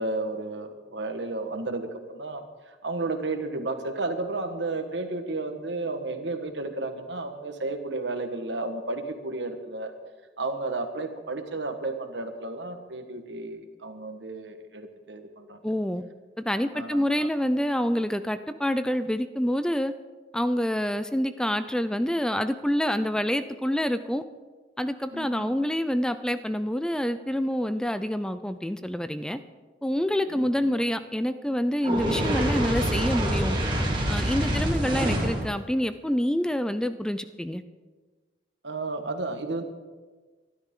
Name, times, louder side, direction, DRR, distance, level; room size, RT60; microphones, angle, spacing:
voice 1, 0.0-2.4 2.8-9.9 10.4-15.6 16.7-17.3 25.1-25.5 30.3-30.8 34.3-34.7 38.6-39.6, right 2 dB, 80° right, 6 dB, 1.5 m, -33 dB
voice 2, 15.6-16.0 16.4-19.9 20.3-24.2 24.8-29.4 29.8-33.6 34.1-37.6, equal, 5° left, 11 dB, 0.4 m, -27 dB
Fire, 31.8-35.5, equal, 25° right, 2.5 m, -26 dB
23.5 x 12.0 x 3.8 m, 1.3 s
head